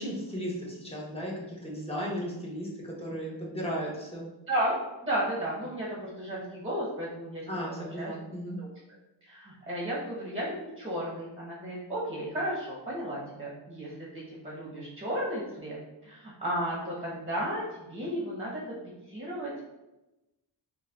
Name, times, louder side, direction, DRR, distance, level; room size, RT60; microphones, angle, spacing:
voice 1, 0.0-2.7 3.0-4.2 7.5-8.6, equal, 15° left, -4 dB, 0.9 m, -35 dB
voice 2, 4.5-8.2 8.6-8.7 9.2-18.8 19.1-19.6, right 1 dB, 15° right, -5 dB, 0.9 m, -34 dB
6.1 x 2.2 x 2.3 m, 1.0 s
wide cardioid pair, 120°, 45 cm